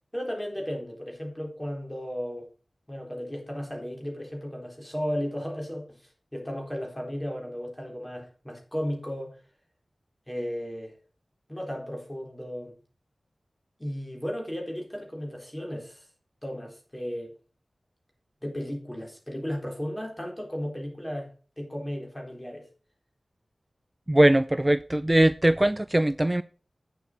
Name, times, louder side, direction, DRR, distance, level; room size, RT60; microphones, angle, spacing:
voice 1, 0.1-2.5 2.9-9.4 10.3-11.0 11.5-12.8 13.8-16.1 16.4-17.3 18.4-21.3 21.6-22.7, equal, 15° left, 3.9 m, -35 dB
voice 2, 24.1-26.4, right 1 dB, 15° right, 0.3 m, -21 dB
8.5 x 7.4 x 4.4 m
wide cardioid pair, 90°, 0 cm